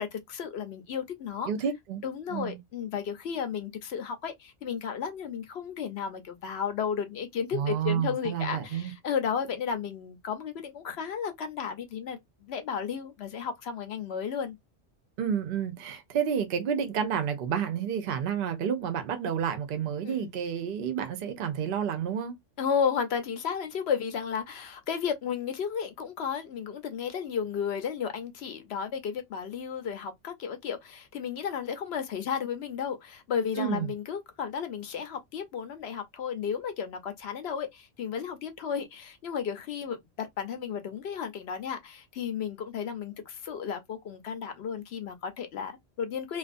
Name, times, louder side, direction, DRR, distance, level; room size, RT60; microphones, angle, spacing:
voice 1, 0.0-1.5 2.0-14.6 20.0-20.3 22.6-46.4, left 7 dB, 65° left, 0.8 m, -33 dB
voice 2, 1.5-2.0 2.3-2.6 7.5-8.9 15.2-22.3 33.6-33.9, right 8 dB, 55° right, 0.7 m, -30 dB
2.5 x 2.3 x 2.5 m
omnidirectional pair, 1.3 m